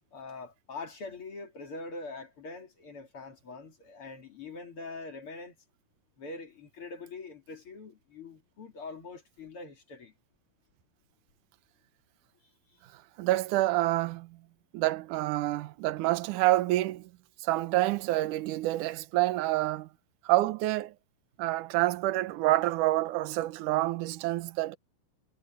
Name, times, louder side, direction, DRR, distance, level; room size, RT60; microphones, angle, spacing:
voice 1, 0.1-5.6 6.2-10.1 12.7-12.8, left 3 dB, 40° left, 3.1 m, -43 dB
voice 2, 13.2-14.3 14.7-17.1 17.4-19.9 20.3-20.9 21.4-24.8, right 17 dB, 70° right, 2.2 m, -27 dB
omnidirectional pair, 4.3 m